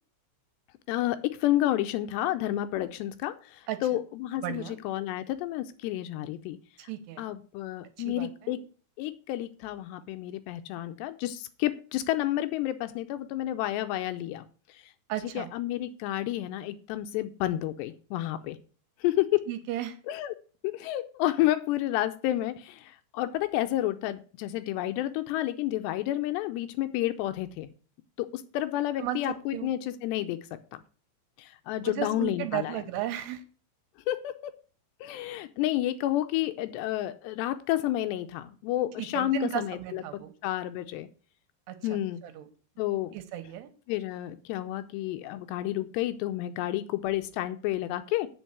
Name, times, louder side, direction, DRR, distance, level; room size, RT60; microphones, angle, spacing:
voice 1, 0.9-3.3 3.8-6.6 7.2-8.6 9.0-14.4 15.4-18.6 19.0-19.4 20.1-20.3 20.8-22.5 23.2-27.7 28.2-28.3 28.5-30.4 31.7-32.8 34.1-34.5 35.0-40.0 40.4-41.1 41.8-42.2 42.8-43.1 43.9-48.3, left 14 dB, 80° left, 10 dB, 2.5 m, -30 dB
voice 2, 4.4-4.8 6.8-7.3 8.0-8.6 15.1-15.5 19.5-20.0 29.0-29.7 31.8-33.4 39.0-40.3 41.7-41.8 42.2-42.5 43.1-43.7, right 12 dB, 75° right, 9 dB, 2.8 m, -34 dB
9.0 x 5.4 x 8.0 m, 0.39 s
omnidirectional pair, 5.4 m